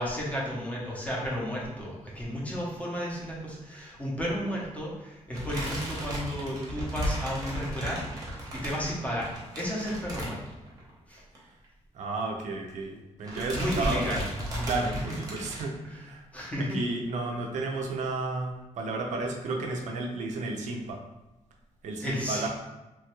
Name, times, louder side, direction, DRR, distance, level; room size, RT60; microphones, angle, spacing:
voice 1, 0.0-8.0 8.5-10.4 11.1-11.2 13.5-14.7 15.2-15.4 15.8-16.0 16.3-16.8 22.0-22.5, equal, 10° left, -5 dB, 0.6 m, -33 dB
sound 1, 5.3-10.9 11.2-11.4 11.6-11.7 12.7-13.0 13.2-15.6, equal, 30° right, 0.8 m, -35 dB
voice 2, 11.9-14.0 14.6-16.3 16.7-21.0 21.8-22.5, right 3 dB, 80° right, 1 dB, 0.5 m, -32 dB
3.0 x 2.2 x 2.9 m, 1.0 s
wide cardioid pair, 165°, 12 cm